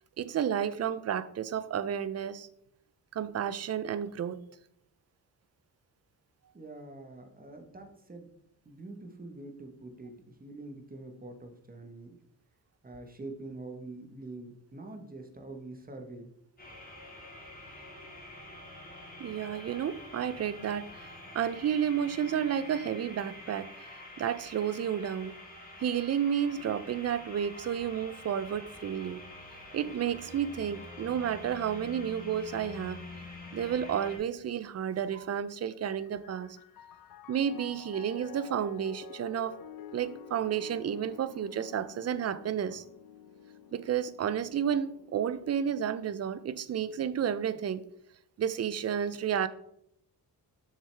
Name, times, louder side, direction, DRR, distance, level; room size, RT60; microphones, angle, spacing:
voice 1, 0.2-2.5 3.1-4.4 19.2-21.1 21.3-23.7 24.2-25.3 25.8-29.2 29.7-33.1 33.5-36.6 37.3-39.6 39.9-42.8 43.7-47.8 48.4-49.5, right 9 dB, 45° right, 0.4 m, -31 dB
voice 2, 6.5-8.3 8.6-12.2 12.8-16.3, right 2 dB, 25° right, 1.1 m, -45 dB
sound 1, 16.6-34.2, left 2 dB, 25° left, 2.1 m, -47 dB
Piano, 35.7-45.3, left 8 dB, 65° left, 0.6 m, -50 dB
7.0 x 6.5 x 3.3 m
wide cardioid pair, 130°, 38 cm